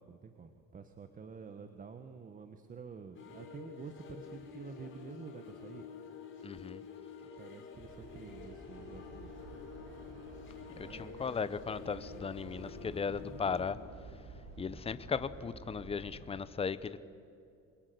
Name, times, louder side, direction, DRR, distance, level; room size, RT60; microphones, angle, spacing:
voice 1, 0.0-5.8 7.4-9.3 10.8-11.5, right 5 dB, 30° right, 7 dB, 1.4 m, -49 dB
sound 1, 3.1-13.7, left 6 dB, 40° left, 4.0 m, -49 dB
voice 2, 6.4-6.8 10.8-13.8 14.6-17.0, left 5 dB, 20° left, 15 dB, 0.8 m, -37 dB
sound 2, 7.7-16.3, right 3 dB, 55° right, 7.4 m, -51 dB
27.5 x 22.5 x 9.4 m, 2.6 s
cardioid pair, 150°, 29 cm